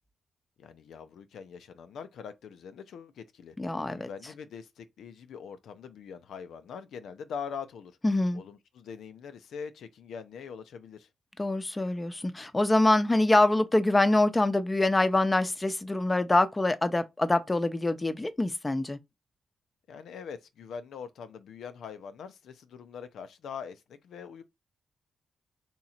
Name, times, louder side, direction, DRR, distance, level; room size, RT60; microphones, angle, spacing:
voice 1, 0.6-3.5 3.9-7.9 8.3-11.1 19.9-24.4, left 6 dB, 75° left, 0.5 m, -43 dB
voice 2, 3.6-4.1 8.0-8.4 11.4-19.0, left 2 dB, 25° left, 0.7 m, -25 dB
3.6 x 2.9 x 4.2 m
supercardioid pair, 45°, 0 cm